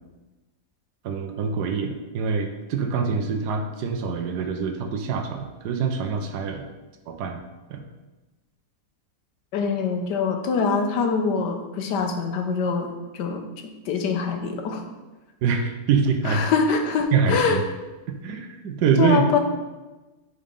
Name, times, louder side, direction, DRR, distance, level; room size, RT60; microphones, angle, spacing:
voice 1, 1.0-6.6 7.1-7.4 7.7-7.8 15.4-16.4 17.1-17.6 18.2-19.2, right 6 dB, 75° right, 5 dB, 1.3 m, -25 dB
voice 2, 9.5-12.9 13.1-13.4 13.9-14.9 16.3-17.6 19.0-19.4, left 5 dB, 80° left, 5 dB, 1.4 m, -24 dB
5.2 x 4.3 x 5.2 m, 1.1 s
omnidirectional pair, 1.8 m